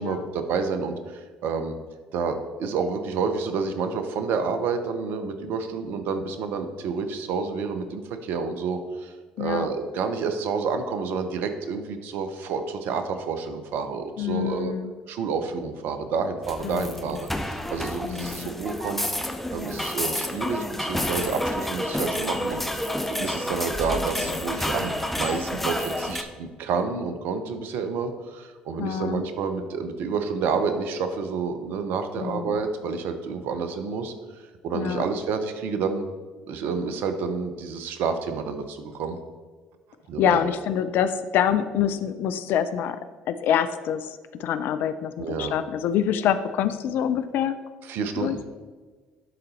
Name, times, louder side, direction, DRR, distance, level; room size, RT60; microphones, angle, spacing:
voice 1, 0.0-1.7 2.1-14.7 15.1-19.0 19.5-34.1 34.6-36.0 36.5-39.2 40.1-40.4 45.2-45.6 47.9-48.6, right 5 dB, 65° right, 8 dB, 0.7 m, -29 dB
voice 2, 9.4-9.7 14.2-14.9 16.6-17.2 18.0-18.5 24.2-24.3 28.8-29.2 32.2-32.6 34.7-35.0 40.2-43.0 43.3-47.6 48.2-48.4, left 9 dB, 60° left, 12 dB, 0.4 m, -26 dB
sound 1, 16.4-26.2, left 1 dB, 5° left, 0.8 m, -29 dB
11.0 x 4.0 x 4.1 m, 1.4 s
hypercardioid pair, 55°, 4 cm